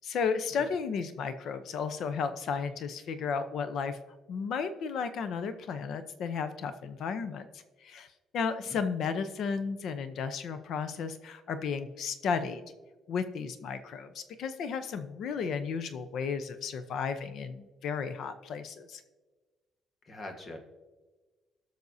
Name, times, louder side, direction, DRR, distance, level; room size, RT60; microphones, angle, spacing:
voice 1, 0.0-4.0 4.3-7.5 7.8-8.1 8.3-12.6 13.1-19.0, left 6 dB, 65° left, 10 dB, 0.7 m, -33 dB
voice 2, 20.0-20.6, left 1 dB, 30° left, 5 dB, 1.4 m, -43 dB
18.5 x 6.4 x 2.7 m, 1.3 s
cardioid pair, 135°, 0 cm